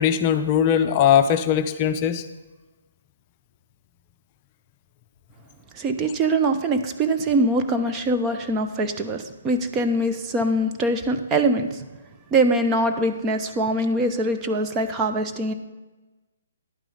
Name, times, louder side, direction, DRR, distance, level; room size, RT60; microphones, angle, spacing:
voice 1, 0.0-2.2, left 9 dB, 30° left, 8 dB, 0.5 m, -20 dB
voice 2, 5.7-11.9 12.3-15.5, right 1 dB, 20° right, 6 dB, 0.8 m, -23 dB
11.0 x 9.0 x 3.9 m, 1.2 s
figure-of-eight pair, 135°, 0 cm